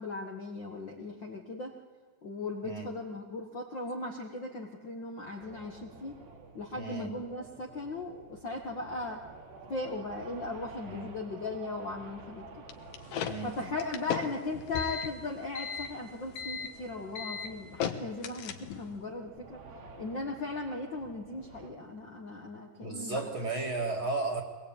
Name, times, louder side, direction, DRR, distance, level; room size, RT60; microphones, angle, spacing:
voice 1, 0.0-1.7 2.2-6.2 6.5-9.2 9.7-12.6 13.4-19.6 20.0-23.2, left 2 dB, 85° left, 0 dB, 1.0 m, -38 dB
sound 1, 5.4-21.7, right 3 dB, 75° right, 4.6 m, -51 dB
voice 2, 6.7-7.1 10.8-11.1 13.2-13.5 22.8-24.4, right 3 dB, 35° right, 2 dB, 2.5 m, -34 dB
sound 2, 12.7-19.0, left 7 dB, 65° left, 2.6 m, -36 dB
23.5 x 20.5 x 8.9 m, 1.5 s
omnidirectional pair, 4.9 m